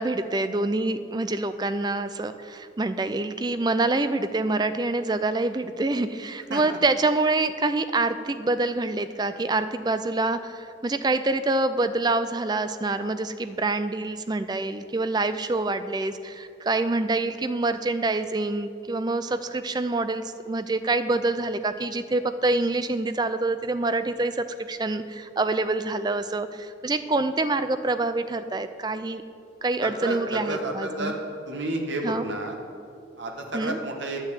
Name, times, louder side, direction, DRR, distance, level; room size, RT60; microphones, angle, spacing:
voice 1, 0.0-29.2 29.6-31.1 32.0-32.2 33.5-33.8, right 2 dB, 20° right, 11 dB, 0.4 m, -26 dB
voice 2, 29.8-31.2 31.4-32.5 33.2-34.2, right 1 dB, 75° right, 2 dB, 1.4 m, -31 dB
10.0 x 6.5 x 8.3 m, 2.5 s
head